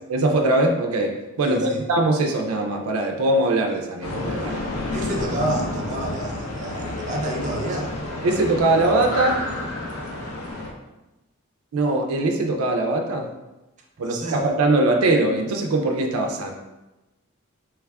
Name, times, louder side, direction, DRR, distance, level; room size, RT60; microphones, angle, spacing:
voice 1, 0.1-4.7 8.2-9.4 11.7-13.3 14.0-16.5, right 2 dB, 90° right, 3 dB, 0.4 m, -21 dB
voice 2, 1.4-1.8 4.9-7.9 14.0-14.4, right 1 dB, 35° right, -1 dB, 0.5 m, -29 dB
sound 1, 4.0-10.7, left 2 dB, 90° left, 0.5 m, -30 dB
3.2 x 2.4 x 3.3 m, 1.0 s
head